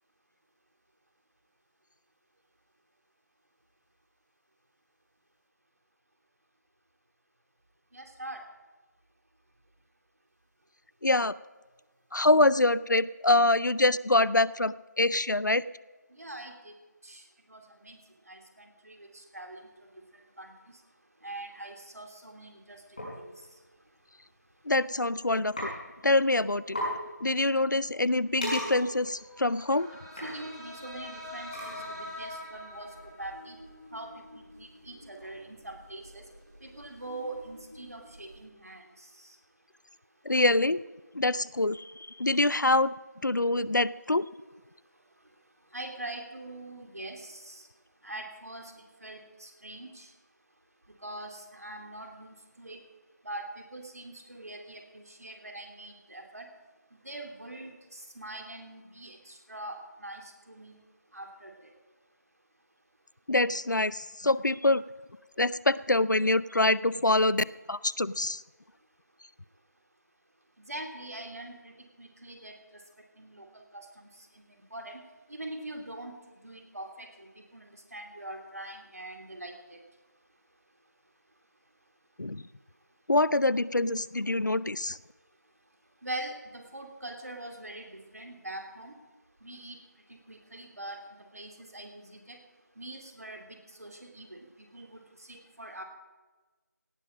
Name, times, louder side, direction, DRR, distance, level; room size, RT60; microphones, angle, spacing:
voice 1, 7.9-8.4 16.2-16.7 17.0-17.2 17.5-18.0 18.3-19.6 20.4-20.5 21.2-23.3 29.9-33.6 33.9-36.2 36.6-38.8 39.2-39.3 45.7-47.6 48.0-48.7 49.0-50.1 51.0-52.8 53.2-56.5 57.0-60.7 61.1-61.5 70.7-71.7 72.0-72.5 73.2-73.9 74.7-75.0 75.3-76.2 76.4-77.3 77.5-79.5 86.0-88.9 89.4-89.8 90.1-91.0 91.3-92.4 92.8-93.5 93.8-94.4 94.7-95.0 95.3-95.8, right 1 dB, 55° right, 3 dB, 2.7 m, -43 dB
voice 2, 11.0-11.3 12.1-15.6 24.7-25.7 26.0-26.8 27.2-29.9 40.3-40.8 41.1-42.9 43.2-44.3 63.3-64.8 65.4-68.4 82.2-82.4 83.1-85.0, left 2 dB, 80° left, 20 dB, 0.5 m, -25 dB
sound 1, 23.0-23.1 24.2-24.4 24.7-25.1 25.6-25.7 26.0-26.1 26.4-26.5 26.7-26.9 27.4-32.1, equal, 25° left, 5.8 m, -37 dB
sound 2, 28.9-38.4, left 1 dB, 20° right, 3.2 m, -46 dB
17.5 x 10.5 x 5.1 m, 1.2 s
figure-of-eight pair, 175°, 10 cm